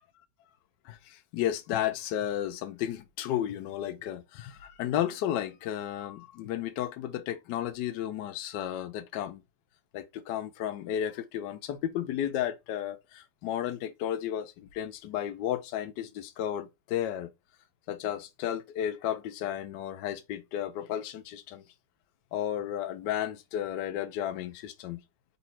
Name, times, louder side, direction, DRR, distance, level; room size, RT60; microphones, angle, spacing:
voice 1, 0.9-9.4 9.9-17.3 17.9-21.6 22.3-25.0, left 11 dB, 70° left, 1.1 m, -33 dB
4.1 x 2.7 x 4.1 m
omnidirectional pair, 2.3 m